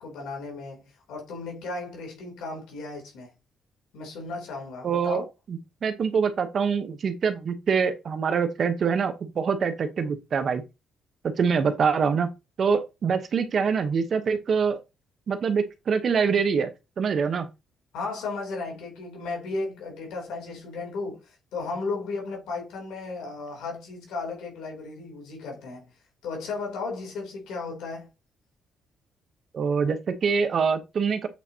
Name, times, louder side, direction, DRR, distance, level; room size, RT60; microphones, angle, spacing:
voice 1, 0.0-3.3 3.9-5.2 17.9-25.8 26.2-28.1, left 3 dB, 90° left, 3.3 m, -35 dB
voice 2, 4.8-5.2 5.5-10.6 11.4-12.3 12.6-14.8 15.3-16.7 17.0-17.5 29.5-31.3, right 6 dB, 50° right, 1.1 m, -25 dB
8.2 x 4.0 x 2.9 m
cardioid pair, 90°, 0 cm